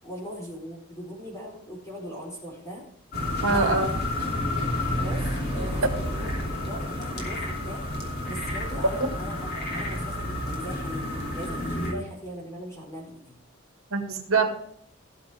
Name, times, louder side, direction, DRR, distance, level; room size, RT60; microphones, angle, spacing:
voice 1, 0.0-2.8 3.4-3.8 4.8-11.1 11.3-13.4, equal, 15° left, -3 dB, 4.4 m, -39 dB
sound 1, 3.1-11.9, left 1 dB, 45° left, 3.0 m, -30 dB
voice 2, 3.4-3.9 11.9-12.0 13.9-14.6, right 4 dB, 70° right, 5 dB, 2.2 m, -24 dB
16.5 x 7.3 x 3.6 m, 0.65 s
head